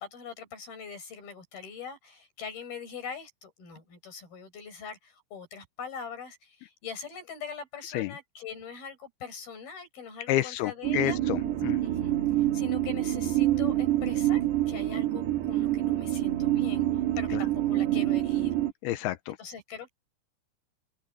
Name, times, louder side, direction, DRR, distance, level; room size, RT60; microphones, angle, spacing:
voice 1, 0.0-11.2 11.8-12.2 12.5-16.9 17.2-18.6 19.3-19.9, left 6 dB, 65° left, 8.0 m, -42 dB
voice 2, 10.3-11.8 17.3-17.4 18.8-19.4, left 14 dB, 80° left, 2.6 m, -29 dB
sound 1, 10.8-18.7, right 13 dB, 85° right, 3.5 m, -27 dB
omnidirectional pair, 4.7 m